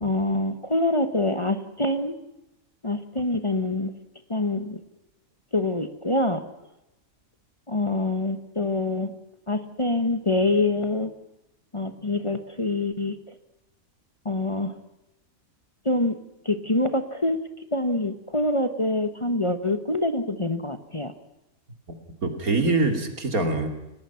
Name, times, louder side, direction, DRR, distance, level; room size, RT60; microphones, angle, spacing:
voice 1, 0.0-2.2 2.8-3.9 4.3-4.8 5.5-6.4 7.7-9.1 9.5-11.1 11.7-13.2 14.2-14.7 15.8-16.2 16.4-17.4 17.7-21.1, left 2 dB, 25° left, 9 dB, 1.2 m, -25 dB
voice 2, 21.9-23.7, right 3 dB, 85° right, 5 dB, 3.2 m, -24 dB
30.0 x 18.0 x 5.8 m, 0.91 s
omnidirectional pair, 1.5 m